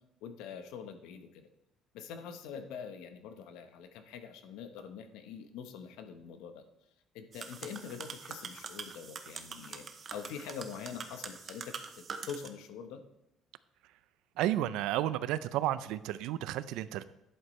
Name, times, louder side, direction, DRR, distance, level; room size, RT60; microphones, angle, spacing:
voice 1, 0.2-1.5 1.9-6.6 7.1-13.0, left 7 dB, 90° left, 7 dB, 1.0 m, -44 dB
sound 1, 7.3-12.5, right 5 dB, 30° right, 0.7 m, -44 dB
voice 2, 14.4-17.0, right 13 dB, 80° right, 15 dB, 0.4 m, -32 dB
11.0 x 8.0 x 3.2 m, 0.89 s
cardioid pair, 160°, 0 cm